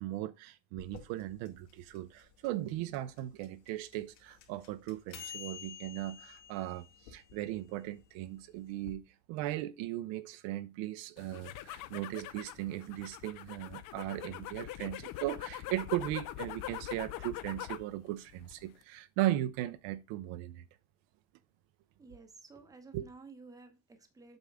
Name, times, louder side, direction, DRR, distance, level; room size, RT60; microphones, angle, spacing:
voice 1, 0.0-9.0 9.3-20.6 22.9-23.1, right 14 dB, 70° right, 0.8 m, -37 dB
sound 1, 0.8-8.9, left 8 dB, 60° left, 2.1 m, -51 dB
sound 2, 11.2-17.9 18.3-18.8, left 14 dB, 45° left, 0.5 m, -43 dB
voice 2, 22.0-24.4, right 3 dB, 5° right, 0.8 m, -53 dB
8.0 x 5.3 x 3.5 m
cardioid pair, 170°, 49 cm